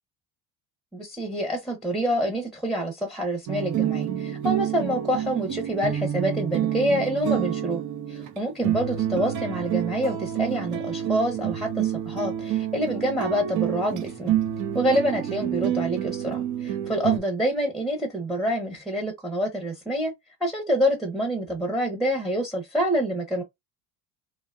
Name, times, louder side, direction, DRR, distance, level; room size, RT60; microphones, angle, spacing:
voice 1, 0.9-7.8 8.1-14.4 14.7-20.1 20.4-23.4, equal, ahead, 0.8 m, -27 dB
sound 1, 3.5-17.2, right 10 dB, 50° right, 0.7 m, -28 dB
2.7 x 2.3 x 2.4 m
supercardioid pair, 95°, 40 cm